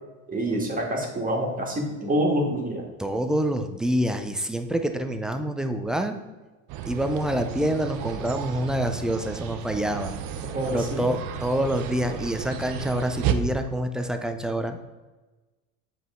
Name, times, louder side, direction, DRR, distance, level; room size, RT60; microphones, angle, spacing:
voice 1, 0.3-2.8 10.4-11.1, right 1 dB, 20° right, 0 dB, 1.7 m, -27 dB
voice 2, 3.0-6.1 6.9-10.1 10.7-14.8, right 1 dB, ahead, 6 dB, 0.4 m, -27 dB
sound 1, 6.7-13.3, right 9 dB, 60° right, 0.8 m, -33 dB
8.1 x 5.7 x 3.6 m, 1.2 s
supercardioid pair, 120°, 42 cm